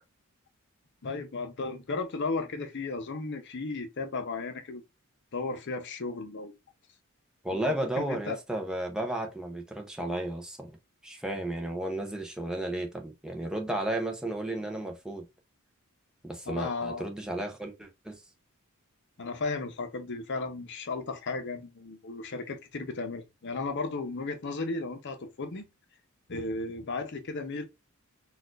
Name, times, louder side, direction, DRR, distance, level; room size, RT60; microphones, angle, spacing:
voice 1, 1.0-4.8 5.3-6.5 7.5-8.4 16.5-17.1 19.2-25.7 26.3-27.6, left 3 dB, 55° left, 0.7 m, -35 dB
voice 2, 7.4-10.7 11.0-15.3 16.2-18.2, right 1 dB, 5° right, 0.6 m, -33 dB
4.1 x 2.4 x 2.4 m
head